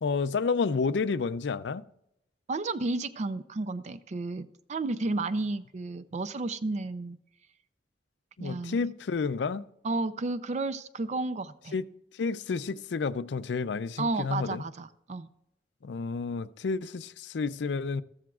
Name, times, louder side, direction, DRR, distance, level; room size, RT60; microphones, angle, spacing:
voice 1, 0.0-1.8 8.4-9.6 11.7-11.8 12.1-14.6 15.8-18.0, left 4 dB, 70° left, 0.4 m, -30 dB
voice 2, 2.5-7.2 8.4-8.9 9.8-11.7 14.0-15.3, right 3 dB, 40° right, 0.4 m, -32 dB
14.0 x 13.5 x 2.4 m
head